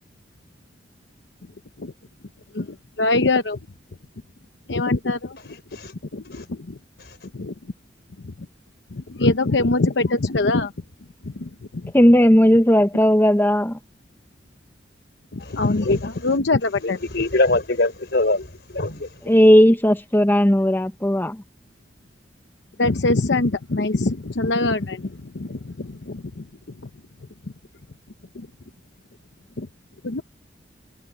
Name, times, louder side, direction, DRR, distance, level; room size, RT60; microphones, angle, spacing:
voice 1, 2.5-3.6 4.7-5.4 6.1-6.8 7.3-7.5 8.2-8.3 8.9-10.7 11.2-11.9 15.3-17.0 22.8-26.5 28.3-28.5 29.6-29.7 30.0-30.2, left 2 dB, 85° left, 0.9 m, -23 dB
voice 2, 11.9-13.8 19.2-21.4, equal, 10° left, 1.0 m, -16 dB
voice 3, 15.4-16.0 16.8-19.1, left 2 dB, 65° left, 4.3 m, -23 dB
head